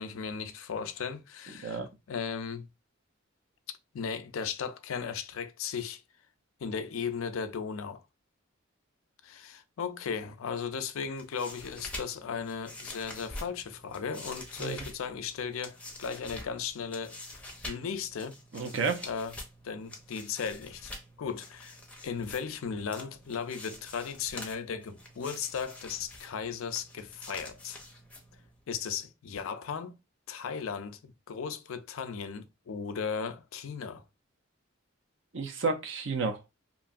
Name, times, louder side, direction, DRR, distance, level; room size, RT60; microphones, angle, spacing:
voice 1, 0.0-1.8 2.1-2.7 3.7-6.0 6.6-8.0 9.2-18.4 19.0-19.3 19.6-20.9 21.2-21.8 22.0-27.8 28.7-30.0 30.3-34.0, left 6 dB, 85° left, 0.4 m, -36 dB
sound 1, 11.0-28.6, left 1 dB, 5° left, 0.5 m, -46 dB
voice 2, 18.5-19.1 35.3-36.5, right 4 dB, 65° right, 0.5 m, -31 dB
3.0 x 2.6 x 2.4 m
head